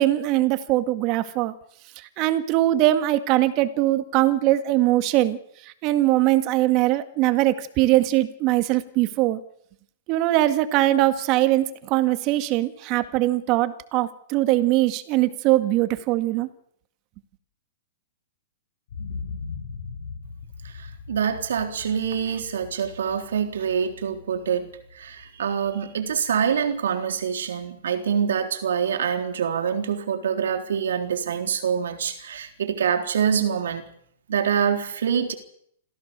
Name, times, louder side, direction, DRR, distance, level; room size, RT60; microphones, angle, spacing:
voice 1, 0.0-1.5 2.2-5.4 5.6-9.4 10.1-16.5, right 15 dB, 35° right, 11 dB, 2.0 m, -21 dB
sound 1, 18.9-26.8 27.2-27.3, left 4 dB, 70° left, 6.5 m, -40 dB
voice 2, 20.6-33.9 34.3-35.3, right 7 dB, 85° right, 4 dB, 3.7 m, -25 dB
27.0 x 15.5 x 6.9 m, 0.67 s
hypercardioid pair, 155°, 0 cm